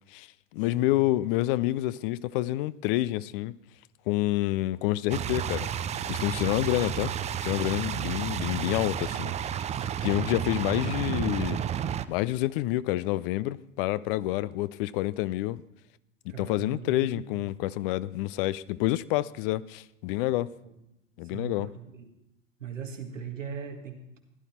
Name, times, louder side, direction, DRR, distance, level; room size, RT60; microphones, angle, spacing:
voice 1, 0.5-3.6 4.1-5.7 6.1-7.1 7.4-9.7 10.0-11.6 12.1-15.6 16.4-20.5 21.2-21.7, left 16 dB, 50° left, 0.5 m, -28 dB
sound 1, 5.1-12.0, right 9 dB, 20° right, 0.4 m, -31 dB
voice 2, 16.3-17.4 20.6-20.7 21.2-22.1 22.6-24.2, right 7 dB, 85° right, 1.8 m, -40 dB
15.5 x 11.5 x 4.3 m
figure-of-eight pair, 80°, 37 cm